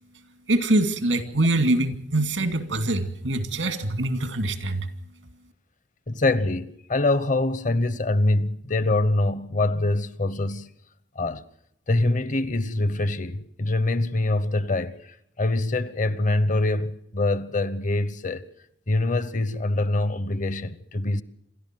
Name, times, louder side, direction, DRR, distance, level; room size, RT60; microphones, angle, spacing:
voice 1, 0.5-4.9, right 2 dB, 85° right, 2.5 m, -24 dB
voice 2, 6.1-10.7 11.2-11.4 11.9-18.5 18.9-21.2, left 2 dB, 45° left, 1.0 m, -24 dB
28.0 x 13.0 x 7.7 m
head